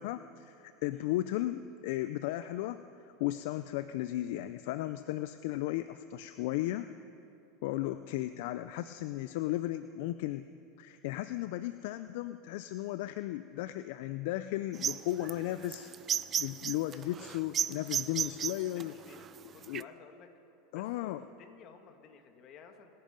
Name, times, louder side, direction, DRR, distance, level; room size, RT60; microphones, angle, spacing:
voice 1, 0.0-6.9 7.6-10.4 10.8-15.9 16.4-18.9 19.4-19.8 20.7-21.2, left 15 dB, 70° left, 12 dB, 0.4 m, -35 dB
sound 1, 14.7-19.8, right 9 dB, 35° right, 0.4 m, -34 dB
voice 2, 17.6-18.1 18.4-20.3 20.7-22.9, left 6 dB, 45° left, 5 dB, 1.9 m, -55 dB
26.0 x 10.5 x 5.2 m, 2.7 s
supercardioid pair, 110°, 0 cm